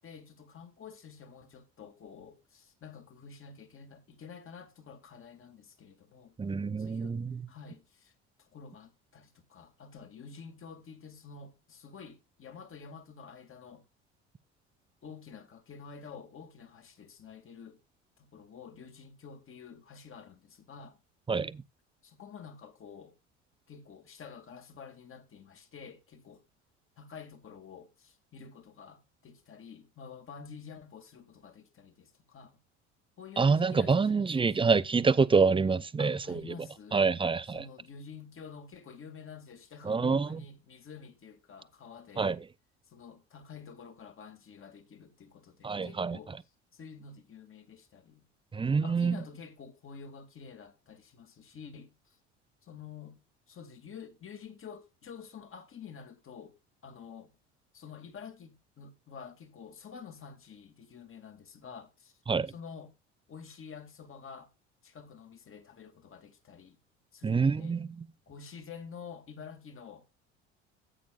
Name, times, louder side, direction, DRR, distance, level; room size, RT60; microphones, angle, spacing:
voice 1, 0.0-6.4 6.8-7.2 7.5-8.1 8.4-13.9 15.0-17.8 18.2-21.0 22.0-23.1 23.7-26.4 27.0-32.6 33.2-34.8 36.0-37.0 37.5-42.4 42.9-46.3 46.7-48.3 48.8-52.2 52.6-56.6 56.8-57.3 57.7-62.2 62.5-63.0 63.3-64.5 64.8-66.8 67.1-67.8 68.3-70.1, left 6 dB, 35° left, 2.3 m, -49 dB
voice 2, 6.4-7.2 21.3-21.6 33.4-36.4 36.9-37.6 39.9-40.3 42.2-42.4 45.6-46.2 48.5-49.2 62.3-62.5 67.2-68.1, right 5 dB, 15° right, 0.6 m, -26 dB
15.0 x 8.7 x 2.4 m
hypercardioid pair, 65°, 34 cm